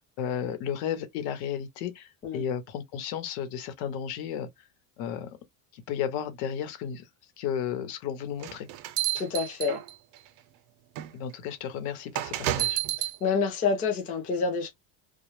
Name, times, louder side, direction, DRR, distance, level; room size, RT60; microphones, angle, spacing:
voice 1, 0.2-4.5 5.0-5.3 5.7-7.1 7.4-8.7 11.1-12.8, left 8 dB, 75° left, 0.9 m, -33 dB
sound 1, 8.4-10.2 11.0-11.1 12.1-13.2, right 14 dB, 85° right, 0.6 m, -30 dB
voice 2, 9.1-9.8 13.0-14.7, left 5 dB, 20° left, 0.3 m, -28 dB
2.2 x 2.0 x 3.0 m
cardioid pair, 155°, 49 cm